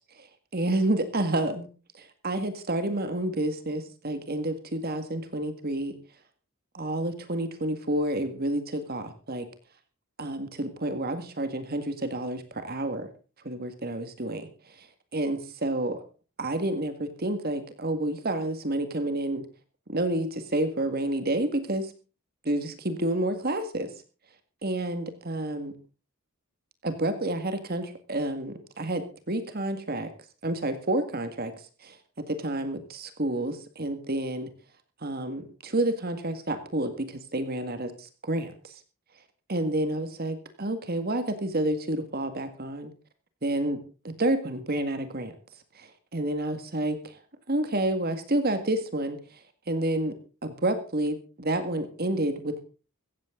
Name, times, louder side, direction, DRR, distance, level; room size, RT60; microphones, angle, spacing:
voice 1, 0.5-1.7 2.0-5.9 6.7-9.5 10.2-13.1 13.4-14.9 15.1-16.0 16.4-19.4 19.9-21.9 22.5-23.9 24.6-25.7 26.8-30.1 30.4-31.5 31.8-34.5 35.0-38.7 39.5-42.9 43.4-43.8 44.0-45.3 45.8-47.2 47.5-49.2 49.7-50.1 50.4-52.6, right 1 dB, 45° right, 9 dB, 1.9 m, -29 dB
16.0 x 14.5 x 3.8 m, 0.35 s
head